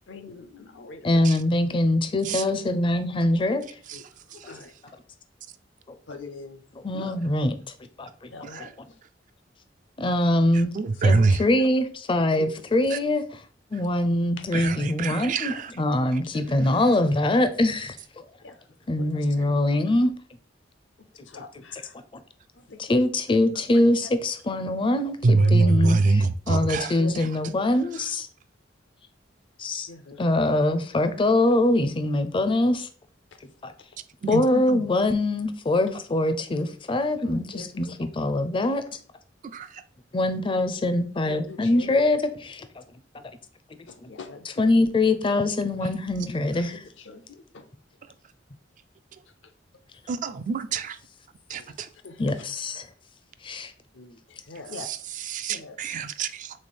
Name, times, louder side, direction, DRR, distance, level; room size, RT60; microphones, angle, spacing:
voice 1, 0.1-1.3 3.9-4.0 4.3-5.0 6.1-6.6 6.9-7.2 8.3-8.7 11.2-11.3 11.5-11.7 12.4-12.5 15.4-15.5 18.4-18.6 19.0-19.5 21.3-21.9 22.5-23.0 23.7-24.1 25.4-25.7 27.0-27.1 29.9-30.3 37.2-38.0 41.3-41.9 43.9-44.7 46.3-46.5 47.0-47.7 51.6-51.7 52.0-52.4 53.9-55.0 55.5-56.0, left 3 dB, 75° left, 0.6 m, -43 dB
voice 2, 1.0-3.6 6.8-7.5 8.0-8.3 10.0-10.7 11.0-13.4 13.7-18.2 18.9-20.1 21.7-21.8 22.8-28.3 29.6-29.9 30.2-32.9 33.6-33.7 34.3-38.8 40.1-42.7 44.0-44.1 44.6-46.8 52.2-52.9 53.4-53.7, left 1 dB, 30° left, 0.4 m, -23 dB
voice 3, 10.8-11.4 14.5-15.7 25.2-26.9 34.2-34.8 39.5-39.7 50.1-51.0 51.5-51.9 55.3-56.5, right 3 dB, 45° right, 0.3 m, -24 dB
3.4 x 3.2 x 4.2 m
head